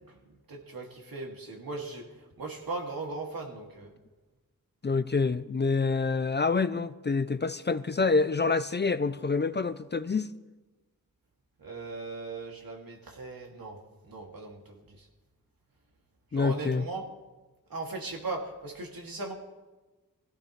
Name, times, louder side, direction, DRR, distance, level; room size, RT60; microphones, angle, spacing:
voice 1, 0.5-2.0 2.4-3.9 11.6-13.8 14.1-14.6 16.3-17.1 17.7-19.3, right 3 dB, 75° right, 2.6 m, -38 dB
voice 2, 4.8-10.3 16.3-16.8, left 4 dB, 30° left, 0.5 m, -27 dB
25.0 x 16.5 x 3.3 m
wide cardioid pair, 110°, 35 cm